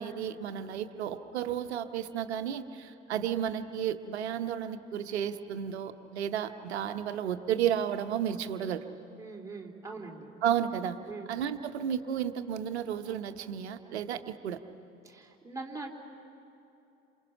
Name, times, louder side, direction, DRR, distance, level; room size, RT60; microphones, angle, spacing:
voice 1, 0.0-8.8 10.4-11.0 11.3-14.6, right 9 dB, 70° right, 10 dB, 0.9 m, -32 dB
voice 2, 9.2-10.3 11.1-11.3 15.0-15.9, right 3 dB, 10° right, -1 dB, 3.1 m, -42 dB
28.0 x 27.5 x 5.7 m, 2.9 s
figure-of-eight pair, 60°, 34 cm